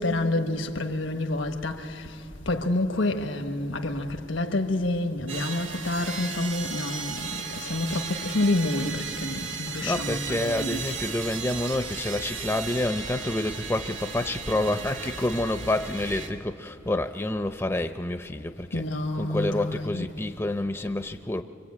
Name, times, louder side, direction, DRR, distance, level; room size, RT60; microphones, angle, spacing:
voice 1, 0.0-11.0 18.7-20.1, left 2 dB, 85° left, 1.3 m, -28 dB
sound 1, 5.3-16.3, right 5 dB, 85° right, 2.1 m, -35 dB
voice 2, 9.7-18.9 19.2-21.4, left 1 dB, 15° left, 0.5 m, -28 dB
25.0 x 24.5 x 8.5 m
head